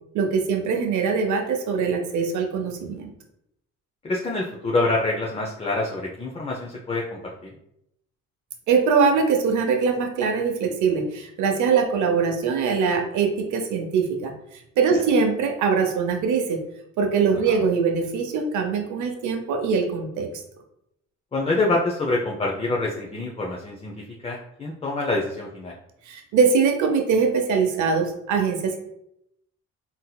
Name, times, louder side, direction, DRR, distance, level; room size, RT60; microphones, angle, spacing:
voice 1, 0.1-3.1 8.7-14.3 14.8-16.6 17.0-20.3 26.1-28.8, right 5 dB, 75° right, 4 dB, 0.6 m, -22 dB
voice 2, 4.0-7.5 17.5-17.7 21.3-25.7, left 2 dB, 20° left, -2 dB, 0.5 m, -26 dB
3.9 x 2.7 x 2.2 m, 0.79 s
cardioid pair, 90°, 30 cm